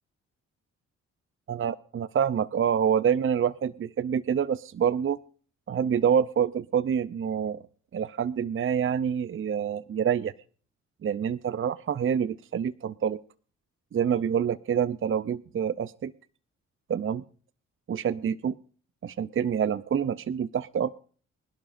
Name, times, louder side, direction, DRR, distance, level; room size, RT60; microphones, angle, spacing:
voice 1, 1.5-5.2 5.7-7.6 7.9-10.3 11.0-13.2 13.9-16.1 16.9-17.2 17.9-18.5 19.0-20.9, right 8 dB, 40° right, 17 dB, 0.6 m, -27 dB
25.0 x 11.5 x 2.6 m, 0.42 s
supercardioid pair, 55°, 32 cm